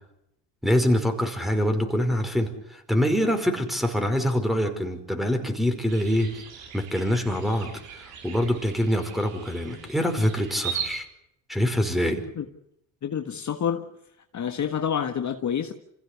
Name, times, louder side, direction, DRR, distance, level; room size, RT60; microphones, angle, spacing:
voice 1, 0.6-6.4 6.7-11.1 11.5-12.2, equal, ahead, 5.2 m, -25 dB
sound 1, 5.9-11.0, right 7 dB, 85° right, 5.1 m, -38 dB
voice 2, 12.1-12.5 13.0-13.9 14.3-15.7, left 8 dB, 40° left, 1.6 m, -28 dB
26.5 x 16.5 x 8.2 m
supercardioid pair, 85°, 44 cm